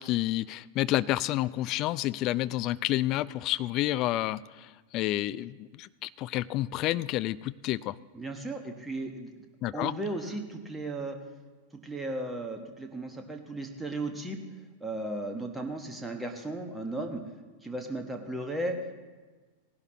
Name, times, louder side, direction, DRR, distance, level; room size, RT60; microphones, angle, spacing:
voice 1, 0.0-4.4 4.9-7.9 9.6-9.9, left 16 dB, 40° left, 17 dB, 0.3 m, -29 dB
voice 2, 8.1-9.3 9.7-11.2 11.8-14.4 14.8-17.2 17.6-18.8, right 2 dB, 5° right, 3 dB, 1.3 m, -35 dB
18.0 x 11.5 x 3.1 m, 1.3 s
figure-of-eight pair, 90°, 0 cm